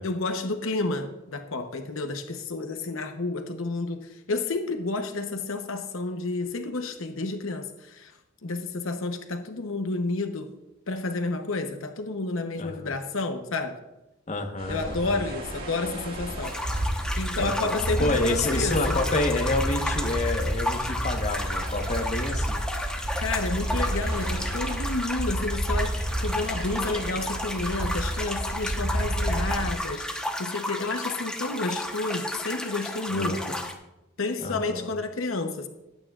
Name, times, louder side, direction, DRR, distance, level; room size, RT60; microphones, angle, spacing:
voice 1, 0.0-8.1 8.4-10.5 10.9-13.8 14.7-16.6 17.2-19.0 23.2-33.5 34.2-35.7, left 3 dB, 80° left, 6 dB, 0.9 m, -30 dB
voice 2, 12.6-12.9 14.3-15.2 17.3-22.6 33.1-33.7 34.4-34.9, left 2 dB, 35° left, 3 dB, 1.2 m, -29 dB
sound 1, 14.6-29.7, right 1 dB, 50° right, 1.7 m, -31 dB
sound 2, 16.4-33.7, left 1 dB, 5° left, 1.0 m, -33 dB
20.5 x 9.2 x 2.4 m, 0.95 s
head